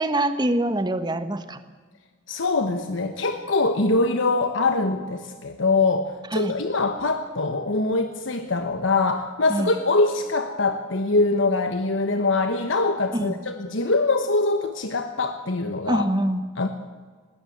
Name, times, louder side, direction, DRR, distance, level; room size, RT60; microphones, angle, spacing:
voice 1, 0.0-1.6 6.3-6.5 9.5-9.7 13.1-13.4 15.9-16.4, right 1 dB, 20° right, 10 dB, 1.2 m, -24 dB
voice 2, 2.3-16.0 16.6-16.7, left 3 dB, 70° left, 7 dB, 1.2 m, -23 dB
20.0 x 17.5 x 8.0 m, 1.5 s
head